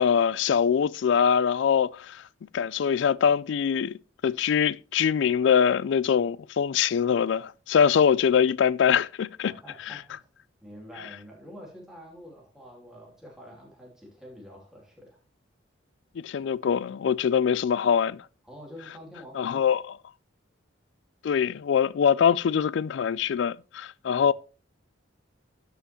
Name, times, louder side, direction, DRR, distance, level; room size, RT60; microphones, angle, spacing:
voice 1, 0.0-2.2 2.5-9.5 9.9-10.0 16.2-18.2 19.4-19.8 21.2-24.3, left 7 dB, 65° left, 0.3 m, -23 dB
voice 2, 9.4-10.3 10.6-15.2 18.4-19.7, equal, ahead, 2.9 m, -47 dB
12.5 x 5.7 x 3.0 m
head